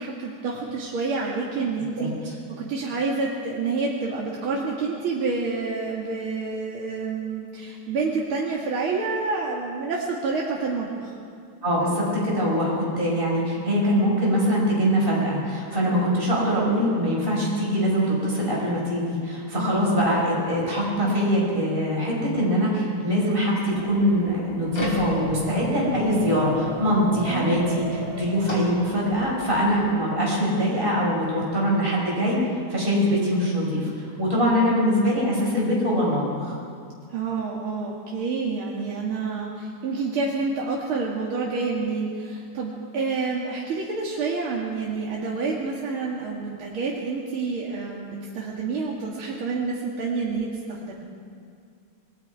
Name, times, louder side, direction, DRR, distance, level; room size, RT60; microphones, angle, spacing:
voice 1, 0.0-2.2 2.5-11.1 19.6-19.9 27.3-27.7 34.5-34.7 37.1-51.0, right 4 dB, 80° right, -4 dB, 2.8 m, -28 dB
voice 2, 11.6-32.4 32.7-36.6, equal, 25° right, -4 dB, 5.6 m, -23 dB
sound 1, 23.6-29.6, left 1 dB, 70° left, 5.4 m, -34 dB
27.0 x 21.0 x 4.8 m, 2.3 s
omnidirectional pair, 2.3 m